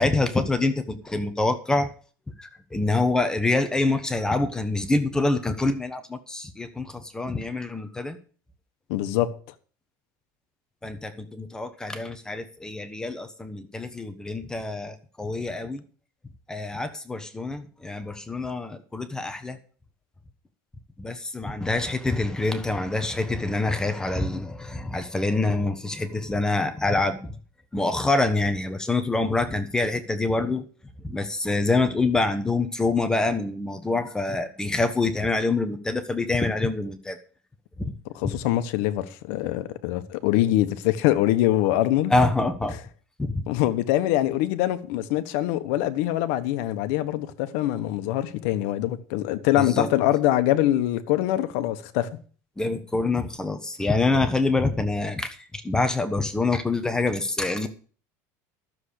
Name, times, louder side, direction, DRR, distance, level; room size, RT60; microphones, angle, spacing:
voice 1, 0.0-1.9 2.4-8.2 10.8-15.8 16.5-19.6 21.0-27.4 27.7-30.7 31.0-37.2 37.8-37.9 42.1-42.8 43.2-43.4 49.6-49.9 52.6-57.7, left 2 dB, 10° left, 1.1 m, -26 dB
voice 2, 8.9-9.3 38.1-42.1 43.5-52.1, left 14 dB, 70° left, 1.3 m, -24 dB
12.5 x 7.3 x 6.6 m
cardioid pair, 150°, 9 cm